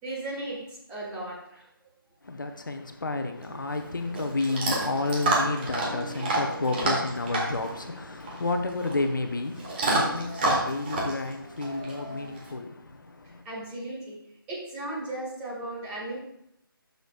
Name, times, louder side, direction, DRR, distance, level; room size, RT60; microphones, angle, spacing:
voice 1, 0.0-1.7 13.4-14.2 14.5-16.2, right 2 dB, 10° right, 1.8 m, -36 dB
voice 2, 2.2-13.4, left 2 dB, 60° left, 0.9 m, -31 dB
Chewing mastication / Dog, 3.4-12.5, right 2 dB, 25° right, 1.7 m, -30 dB
13.0 x 6.6 x 2.4 m
figure-of-eight pair, 155°, 12 cm